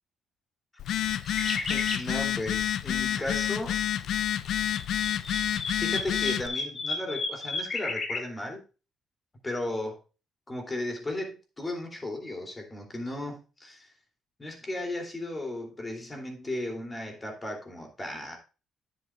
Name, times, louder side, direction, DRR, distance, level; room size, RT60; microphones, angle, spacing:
Telephone, 0.8-6.5, left 10 dB, 70° left, 0.5 m, -29 dB
sound 1, 1.3-2.1 4.4-8.2, left 3 dB, 40° left, 2.6 m, -33 dB
voice 1, 1.4-3.8 5.8-8.6 9.4-10.0 10.5-13.9 14.4-18.4, left 1 dB, 20° left, 1 dB, 2.9 m, -35 dB
9.9 x 7.8 x 2.4 m, 0.33 s
cardioid pair, 95°, 0 cm